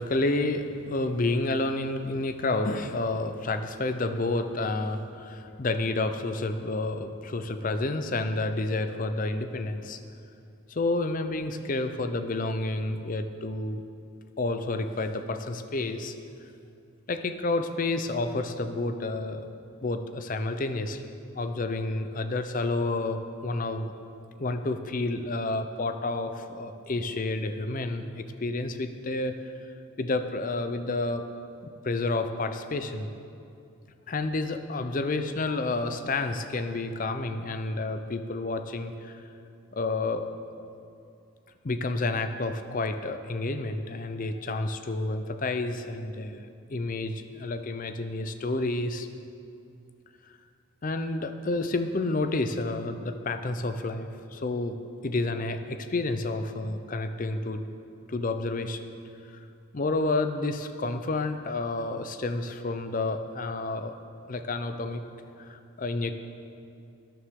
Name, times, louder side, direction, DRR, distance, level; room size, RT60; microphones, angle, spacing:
voice 1, 0.0-10.0 10.7-13.8 14.4-16.2 17.1-19.5 19.8-23.9 24.4-29.4 30.0-31.2 31.6-33.1 34.1-39.2 39.7-40.3 41.6-46.4 46.7-49.1 50.8-54.8 55.0-57.7 58.1-58.8 59.7-63.9 64.3-65.0 65.4-66.1, left 2 dB, 40° left, 8 dB, 0.5 m, -30 dB
12.5 x 10.0 x 3.7 m, 2.5 s
head